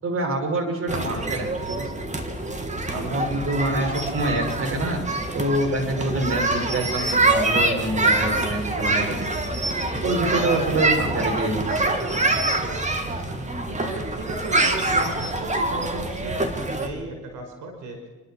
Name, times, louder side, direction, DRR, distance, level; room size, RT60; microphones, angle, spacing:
voice 1, 0.0-1.9 2.9-5.0 5.3-9.2 10.0-12.3, right 2 dB, 45° right, 2 dB, 6.2 m, -26 dB
sound 1, 0.9-16.9, right 2 dB, 25° right, 3.0 m, -25 dB
voice 2, 3.0-3.3 12.5-18.0, right 2 dB, 80° right, 4 dB, 5.4 m, -36 dB
29.0 x 12.0 x 7.4 m, 1.2 s
cardioid pair, 90°, 30 cm